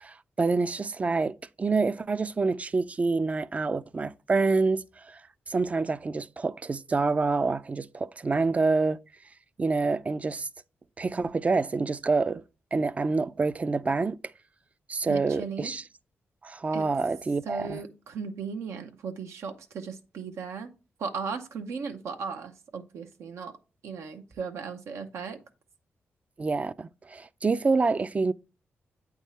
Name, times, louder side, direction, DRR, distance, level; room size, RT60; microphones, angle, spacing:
voice 1, 0.0-5.2 5.5-9.0 9.6-10.5 11.0-12.4 12.7-14.2 14.9-15.8 16.4-17.8 26.4-28.3, right 3 dB, 30° right, 0.3 m, -27 dB
voice 2, 15.1-15.7 16.7-16.9 17.4-20.7 21.0-23.6 23.8-25.4, right 5 dB, 85° right, 0.7 m, -36 dB
8.2 x 3.6 x 4.2 m
cardioid pair, 85°, 5 cm